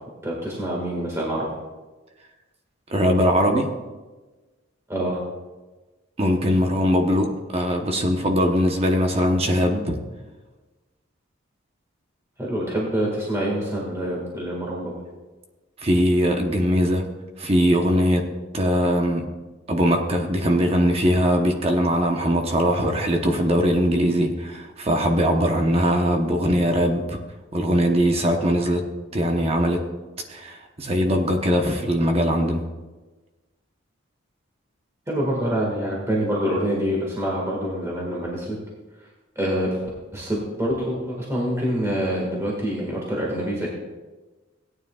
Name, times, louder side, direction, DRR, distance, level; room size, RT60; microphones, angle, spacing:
voice 1, 0.2-1.5 4.9-5.2 12.4-14.9 35.1-38.6 39.4-39.8 40.1-43.7, equal, 15° right, -3 dB, 1.7 m, -26 dB
voice 2, 2.9-3.7 6.2-9.9 15.8-17.0 17.4-18.2 18.5-19.2 19.7-27.2 27.5-28.8 29.1-29.8 30.3-32.6, equal, 30° right, 3 dB, 0.9 m, -21 dB
17.0 x 9.4 x 2.4 m, 1.2 s
head